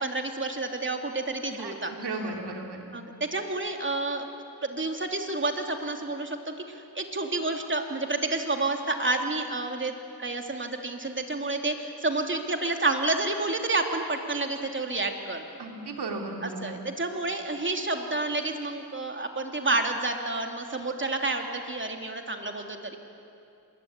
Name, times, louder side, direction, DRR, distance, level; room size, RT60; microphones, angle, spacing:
voice 1, 0.0-1.9 2.9-4.4 4.6-15.6 16.4-23.0, right 2 dB, 30° right, 4 dB, 3.1 m, -30 dB
voice 2, 2.0-2.9 15.6-16.7, right 3 dB, 85° right, 2 dB, 3.4 m, -35 dB
25.5 x 21.5 x 9.8 m, 2.5 s
cardioid pair, 75°, 39 cm